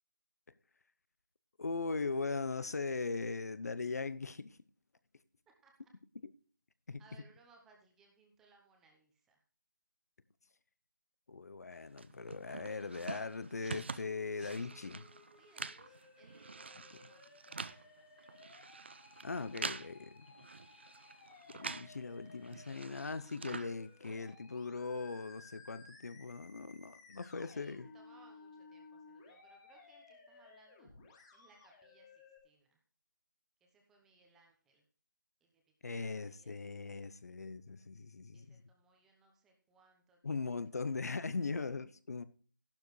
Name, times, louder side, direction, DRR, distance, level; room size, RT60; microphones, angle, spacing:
voice 1, 1.6-4.6 6.9-7.0 11.3-15.1 19.2-20.3 21.5-27.9 35.8-38.6 40.2-42.2, left 4 dB, 50° left, 0.7 m, -40 dB
voice 2, 7.0-9.4 15.4-18.4 27.5-30.9 31.3-32.8 33.6-34.8 35.4-37.2 38.3-41.5, right 4 dB, 5° right, 0.8 m, -67 dB
sound 1, 12.0-22.0 22.3-24.3, right 4 dB, 35° right, 0.4 m, -46 dB
Musical instrument, 14.4-32.4, left 3 dB, 15° left, 2.2 m, -59 dB
12.5 x 12.0 x 3.2 m
figure-of-eight pair, 170°, 11 cm